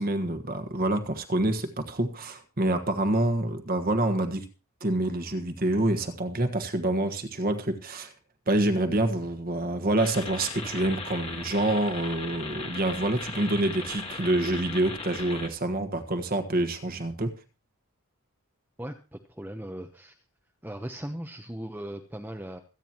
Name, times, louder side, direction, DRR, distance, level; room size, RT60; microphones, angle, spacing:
voice 1, 0.0-4.5 4.8-8.1 8.5-17.3, right 1 dB, 40° right, 7 dB, 1.4 m, -27 dB
sound 1, 10.0-15.5, left 3 dB, 25° left, 1.8 m, -38 dB
voice 2, 18.8-20.2 20.6-22.6, right 1 dB, 10° right, 3 dB, 0.8 m, -38 dB
26.0 x 9.2 x 3.0 m, 0.31 s
head